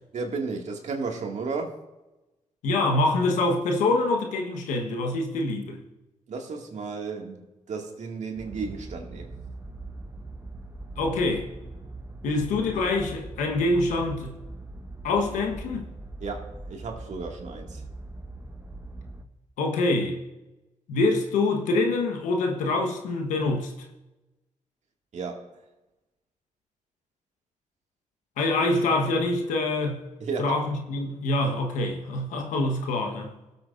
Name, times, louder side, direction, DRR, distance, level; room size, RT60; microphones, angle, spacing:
voice 1, 0.1-1.8 6.3-9.4 16.2-17.8 25.1-25.5 30.2-30.6, right 4 dB, 65° right, 2.0 m, -33 dB
voice 2, 2.6-5.8 11.0-11.5 12.2-14.4 15.0-15.9 19.6-20.2 20.9-23.7 28.4-30.0 30.4-33.3, left 2 dB, 90° left, 1.2 m, -25 dB
sound 1, 8.4-19.2, right 2 dB, 20° right, 1.3 m, -41 dB
18.0 x 7.9 x 2.5 m
supercardioid pair, 50°, 13 cm